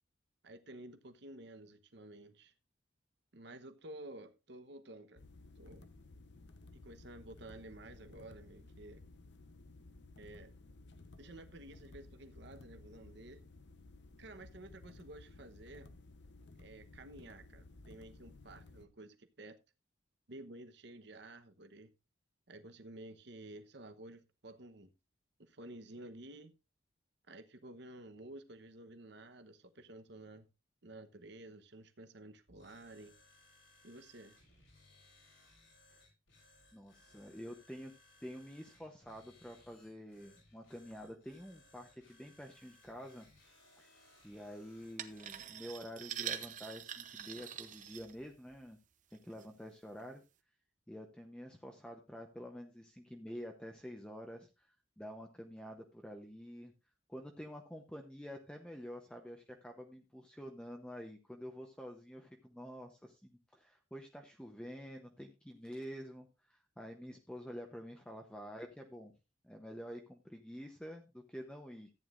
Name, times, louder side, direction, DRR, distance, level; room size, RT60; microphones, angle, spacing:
voice 1, 0.4-2.5 3.3-5.2 5.6-5.9 6.7-9.0 10.2-10.5 11.2-13.4 14.2-15.9 16.6-19.6 20.3-21.9 22.5-24.9 25.4-26.5 27.3-30.5 30.8-33.1 33.8-34.4, right 1 dB, 60° right, 1.0 m, -52 dB
sound 1, 5.2-18.9, left 2 dB, 60° left, 0.9 m, -56 dB
sound 2, 32.5-45.5, left 2 dB, 80° left, 5.3 m, -65 dB
voice 2, 36.7-37.9 38.2-43.3 43.8-43.9 44.2-48.8 49.1-50.2 50.9-54.7 55.0-56.7 57.1-69.1 69.4-71.9, equal, 5° left, 0.8 m, -48 dB
sound 3, 45.0-48.6 49.1-49.5 50.0-50.1, right 9 dB, 40° right, 0.7 m, -44 dB
14.0 x 9.4 x 2.5 m
head